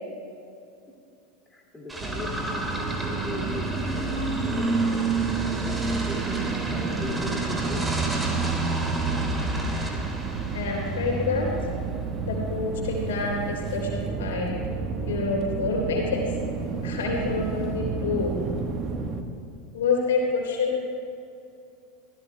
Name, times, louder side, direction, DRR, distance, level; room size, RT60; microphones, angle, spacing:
voice 1, 1.5-5.2 5.9-7.9, left 2 dB, 15° left, -2 dB, 2.3 m, -39 dB
sound 1, 1.9-11.4, right 2 dB, 10° right, 2.6 m, -29 dB
sound 2, 2.0-19.2, right 4 dB, 35° right, 1.2 m, -31 dB
voice 2, 10.5-11.5 12.2-14.5 15.1-16.2 16.8-18.3 19.7-20.8, left 4 dB, 70° left, -1 dB, 3.5 m, -27 dB
25.0 x 15.5 x 2.3 m, 2.7 s
figure-of-eight pair, 80°, 0 cm